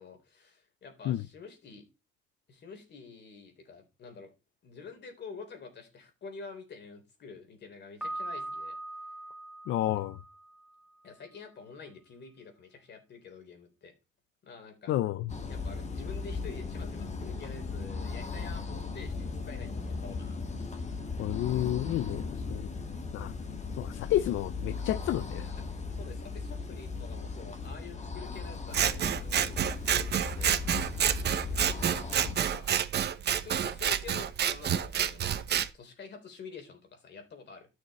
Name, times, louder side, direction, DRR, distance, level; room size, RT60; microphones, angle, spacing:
voice 1, 0.0-1.8 2.5-4.3 4.6-8.8 9.8-10.0 11.0-13.9 14.4-14.9 15.5-20.4 25.7-30.1 30.4-30.5 31.5-32.7 33.3-37.7, left 4 dB, 60° left, 3.5 m, -48 dB
Piano, 8.0-10.9, right 1 dB, 5° right, 2.4 m, -41 dB
voice 2, 9.7-10.2 14.9-15.3 21.2-22.7 23.1-23.3 23.8-25.5 32.5-32.7, left 13 dB, 80° left, 0.5 m, -30 dB
sound 1, 15.3-32.3, left 4 dB, 35° left, 1.6 m, -37 dB
Scissors, 28.7-35.7, right 9 dB, 55° right, 0.9 m, -29 dB
12.5 x 6.6 x 4.2 m
cardioid pair, 90°, 20 cm